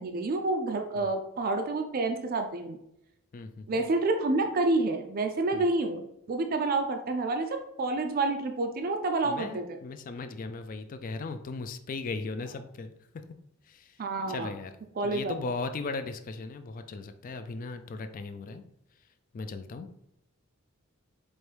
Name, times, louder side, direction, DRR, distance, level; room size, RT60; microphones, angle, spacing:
voice 1, 0.0-2.8 3.7-9.6 14.0-14.5 15.0-15.3, right 2 dB, 45° right, 5 dB, 0.4 m, -28 dB
voice 2, 3.3-3.9 5.5-5.7 9.2-12.9 13.7-14.0 14.3-14.7 15.0-18.6 19.3-19.9, left 3 dB, 40° left, 9 dB, 0.3 m, -37 dB
4.5 x 2.6 x 3.3 m, 0.80 s
head